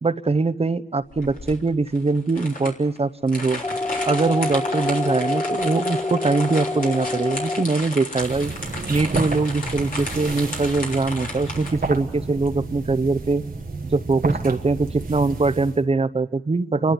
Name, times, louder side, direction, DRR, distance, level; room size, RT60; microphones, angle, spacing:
voice 1, 0.0-3.6 4.1-8.5 8.9-13.4 13.8-16.9, right 3 dB, 45° right, 12 dB, 0.8 m, -22 dB
sound 1, 1.1-11.7, left 2 dB, 75° left, 3.7 m, -34 dB
sound 2, 3.6-7.6, left 2 dB, 30° left, 0.8 m, -26 dB
sound 3, 8.1-15.8, right 3 dB, 90° right, 1.5 m, -31 dB
28.0 x 12.0 x 9.7 m, 1.0 s
wide cardioid pair, 55°, 14 cm